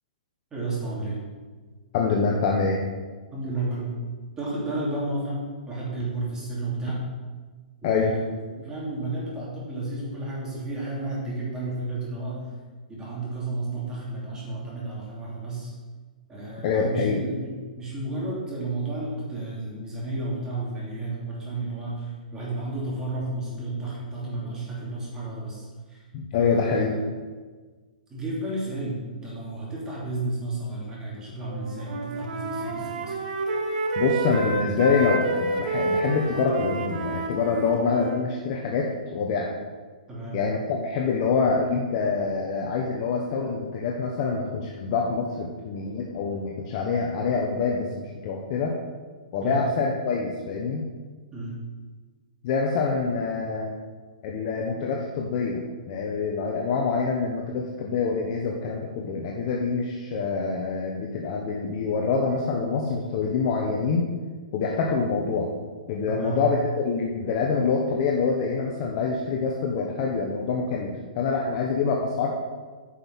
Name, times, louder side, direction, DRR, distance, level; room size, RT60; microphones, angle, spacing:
voice 1, 0.5-1.2 3.3-4.0 4.4-7.1 7.8-12.5 12.9-15.7 16.3-26.0 26.4-27.0 28.1-33.1 40.1-40.5 49.4-49.6 51.3-51.5 66.1-66.4, right 2 dB, 15° right, -6 dB, 2.9 m, -32 dB
voice 2, 1.9-2.8 7.8-8.1 16.6-17.2 26.1-26.9 34.0-39.5 40.3-48.7 49.3-50.9 52.4-53.7 54.2-64.1 64.5-65.5 65.9-66.6 66.8-72.3, left 5 dB, 40° left, -1 dB, 1.1 m, -26 dB
Wind instrument woodwind instrument, 31.5-38.2, right 3 dB, 60° right, 1.6 m, -29 dB
9.8 x 5.5 x 6.2 m, 1.4 s
hypercardioid pair, 160°, 5 cm